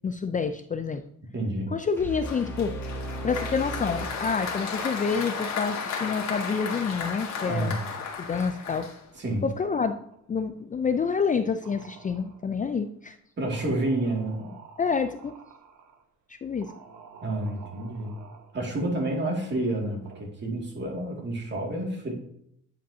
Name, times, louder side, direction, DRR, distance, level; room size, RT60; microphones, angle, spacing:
voice 1, 0.0-1.0 1.7-2.7 3.2-7.7 8.2-8.9 9.4-10.0 10.3-13.2 14.8-15.3 16.3-16.7, left 5 dB, 25° left, 8 dB, 0.4 m, -28 dB
voice 2, 1.3-1.7 7.5-7.8 9.1-9.5 13.4-14.5 17.2-18.2 18.5-22.1, right 1 dB, 35° right, 0 dB, 2.2 m, -29 dB
sound 1, 2.0-5.0, right 1 dB, 10° left, 2.0 m, -36 dB
Applause, 2.3-9.4, left 6 dB, 65° left, 1.6 m, -34 dB
sound 2, 3.8-10.9 11.2-11.3 11.6-12.8 13.5-16.0 16.6-20.2, right 5 dB, 80° right, 1.2 m, -50 dB
9.0 x 5.1 x 2.7 m, 0.71 s
cardioid pair, 90°, 30 cm